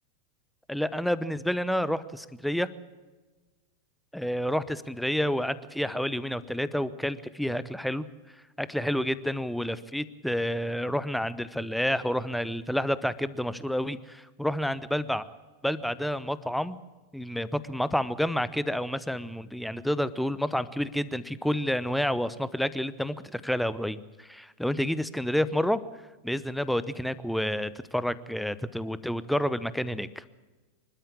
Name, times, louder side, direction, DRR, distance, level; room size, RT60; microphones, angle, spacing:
voice 1, 0.7-2.7 4.1-8.0 8.6-15.2 15.6-16.8 17.1-25.8 26.2-30.2, equal, ahead, 15 dB, 0.8 m, -29 dB
25.0 x 12.5 x 8.7 m, 1.2 s
figure-of-eight pair, 90°, 0 cm